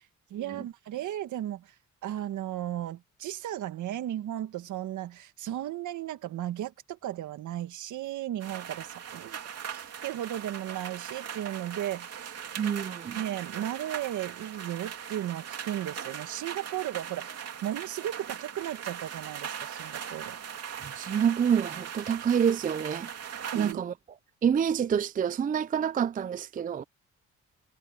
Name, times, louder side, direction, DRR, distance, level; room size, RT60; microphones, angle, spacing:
voice 1, 0.3-1.7 2.0-9.4 9.7-12.4 13.1-17.3 17.6-20.4 23.5-23.8, right 12 dB, 75° right, 1.7 m, -35 dB
sound 1, 8.4-23.7, right 8 dB, 55° right, 2.8 m, -40 dB
voice 2, 12.6-13.2 20.7-23.1 23.5-23.9 24.4-26.8, right 8 dB, 30° right, 0.4 m, -27 dB
cardioid pair, 90°, 30 cm